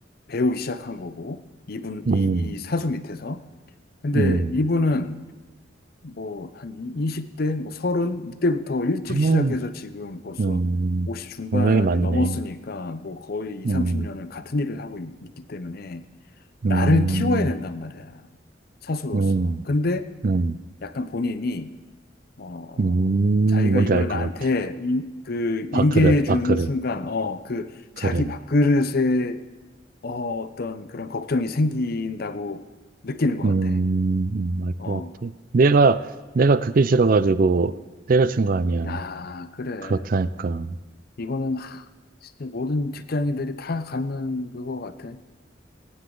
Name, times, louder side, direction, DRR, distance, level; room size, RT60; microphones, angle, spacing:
voice 1, 0.3-1.4 1.7-3.4 4.0-5.3 6.0-10.6 11.1-16.0 16.7-18.2 18.8-20.1 20.8-21.7 22.4-23.0 23.5-29.4 30.0-32.6 33.0-33.7 34.8-35.1 38.8-40.1 41.2-41.8 42.2-45.2, left 2 dB, 55° left, 11 dB, 0.6 m, -27 dB
voice 2, 2.1-2.5 4.1-4.5 9.1-9.5 10.4-11.1 11.5-12.4 13.6-14.1 16.6-17.4 19.1-19.6 20.2-20.6 22.8-24.3 25.7-26.7 28.0-28.3 33.4-36.0 36.3-37.7 38.1-39.0 39.8-40.8, right 3 dB, 50° right, 15 dB, 0.4 m, -21 dB
19.0 x 9.5 x 3.9 m, 1.2 s
head